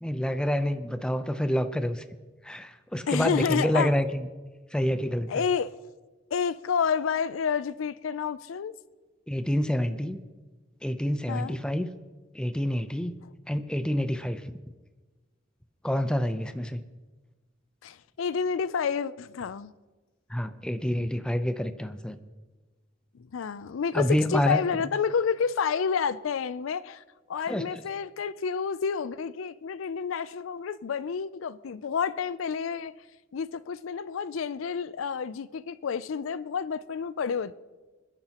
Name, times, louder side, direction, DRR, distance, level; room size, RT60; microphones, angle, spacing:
voice 1, 0.0-2.0 2.4-4.2 4.7-5.3 9.3-10.2 10.8-11.9 12.3-13.1 13.5-14.4 15.8-16.8 20.3-22.2 23.9-24.6 27.5-27.6, equal, 5° left, 0.6 m, -27 dB
voice 2, 3.1-3.9 5.3-5.7 6.3-8.7 11.3-11.6 17.8-19.7 23.3-27.0 27.3-32.9 33.3-37.6, left 6 dB, 85° left, 0.4 m, -29 dB
27.0 x 10.5 x 3.0 m
head